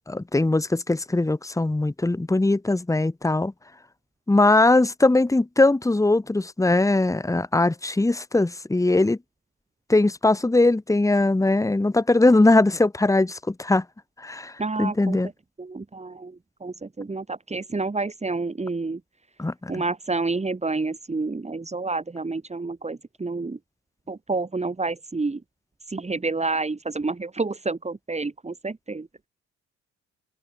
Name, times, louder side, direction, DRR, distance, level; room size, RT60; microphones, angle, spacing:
voice 1, 0.1-3.5 4.3-9.2 9.9-13.8 14.2-14.5 14.8-15.3 19.4-19.7, left 2 dB, 10° left, 1.6 m, -20 dB
voice 2, 14.6-15.2 15.6-19.0 19.7-23.6 24.1-25.4 25.9-29.3, right 3 dB, 20° right, 4.7 m, -29 dB
open air
cardioid pair, 90°, 30 cm